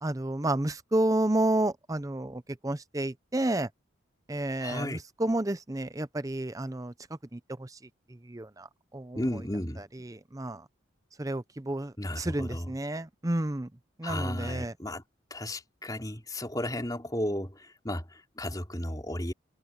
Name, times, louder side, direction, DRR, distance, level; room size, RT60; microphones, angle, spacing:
voice 1, 0.0-3.7 4.3-7.8 8.1-9.4 9.9-10.7 11.2-13.7 14.0-14.7, right 1 dB, 15° right, 0.6 m, -31 dB
voice 2, 4.6-5.0 9.1-9.8 12.0-12.7 14.0-15.0 15.3-19.3, left 1 dB, 20° left, 4.1 m, -34 dB
head